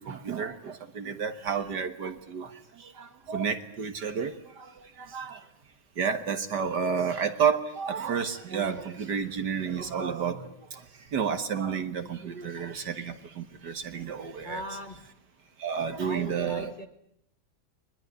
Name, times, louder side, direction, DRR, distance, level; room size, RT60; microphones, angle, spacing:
voice 1, 0.0-2.5 2.8-4.7 5.0-5.4 6.0-10.8 11.1-14.8 15.6-16.7, right 7 dB, 60° right, 9 dB, 1.9 m, -31 dB
voice 2, 14.4-15.0 16.0-16.9, left 1 dB, 25° left, 6 dB, 1.8 m, -38 dB
23.0 x 21.0 x 9.7 m, 0.71 s
omnidirectional pair, 2.2 m